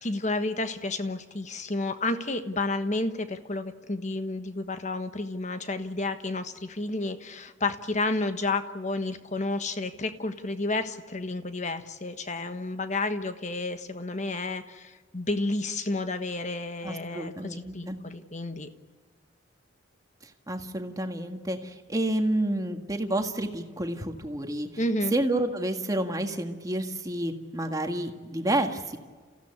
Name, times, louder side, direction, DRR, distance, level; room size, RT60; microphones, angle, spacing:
voice 1, 0.0-18.7 24.8-25.2, left 2 dB, 40° left, 9 dB, 1.4 m, -31 dB
voice 2, 16.8-18.0 20.5-24.7 25.1-29.0, right 1 dB, 20° right, 5 dB, 1.7 m, -29 dB
28.5 x 16.0 x 9.7 m, 1.5 s
head